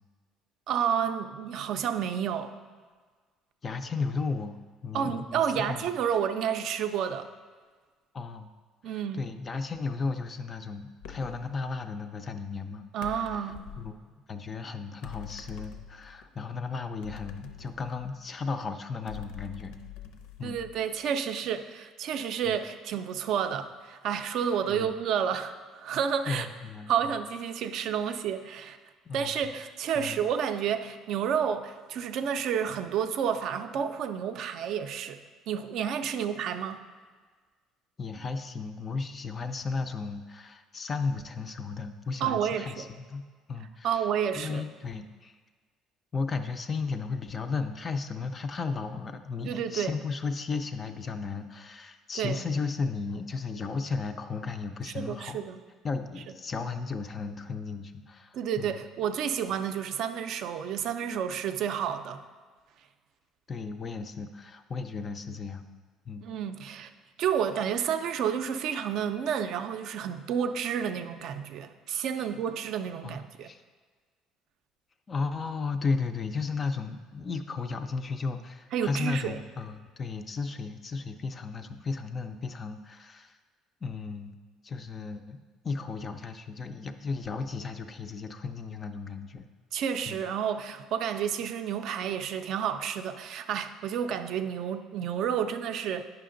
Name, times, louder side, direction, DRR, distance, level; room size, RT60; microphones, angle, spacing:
voice 1, 0.7-2.5 4.9-7.3 8.8-9.3 12.9-13.7 20.4-26.5 26.9-28.8 29.1-35.2 35.5-36.8 42.2-42.7 43.8-44.6 49.5-49.9 52.2-52.4 54.9-55.6 58.3-62.2 66.2-66.9 67.2-73.5 78.7-79.4 89.7-96.0, right 8 dB, 50° right, 9 dB, 0.4 m, -30 dB
voice 2, 3.6-5.9 8.1-8.5 8.9-14.0 14.3-19.7 20.4-20.6 22.5-22.6 24.7-25.0 26.3-27.2 29.1-29.3 29.9-30.2 36.2-36.3 38.0-43.2 43.5-44.1 44.3-45.4 46.1-55.4 55.8-58.8 63.5-65.6 66.1-66.3 72.2-72.3 73.0-73.6 75.1-83.4 83.8-84.4 84.6-85.4 85.6-89.5 90.1-90.2, left 4 dB, 20° left, 8 dB, 0.3 m, -35 dB
sound 1, 11.0-11.5 13.0-14.0 15.0-16.3 17.0-18.4 19.1-21.0, left 8 dB, 80° left, 0.6 m, -45 dB
9.3 x 5.8 x 3.8 m, 1.5 s
cardioid pair, 180°, 0 cm